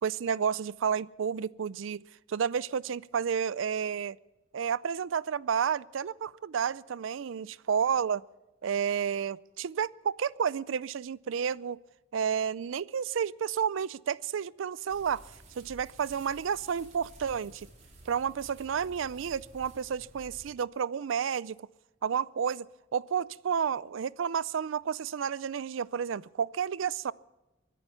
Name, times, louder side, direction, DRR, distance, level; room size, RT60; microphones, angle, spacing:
voice 1, 0.0-2.0 2.3-4.2 4.5-8.2 8.6-11.8 12.1-15.3 15.6-17.7 18.1-21.7 22.0-22.7 22.9-27.1, right 7 dB, 80° right, 0.4 m, -31 dB
sound 1, 14.9-20.5, right 1 dB, 35° right, 4.2 m, -53 dB
24.0 x 9.2 x 5.7 m
head